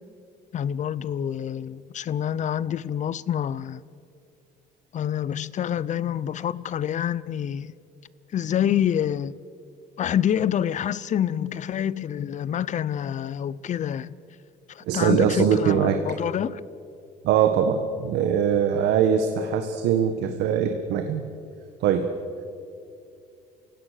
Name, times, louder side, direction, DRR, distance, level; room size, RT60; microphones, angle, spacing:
voice 1, 0.5-3.8 4.9-7.7 8.3-9.4 10.0-14.2 14.7-16.6, left 9 dB, 45° left, 0.7 m, -27 dB
voice 2, 14.8-16.0 17.2-21.2 21.8-22.1, right 8 dB, 85° right, 1.4 m, -22 dB
29.0 x 17.0 x 6.7 m
cardioid pair, 110°, 17 cm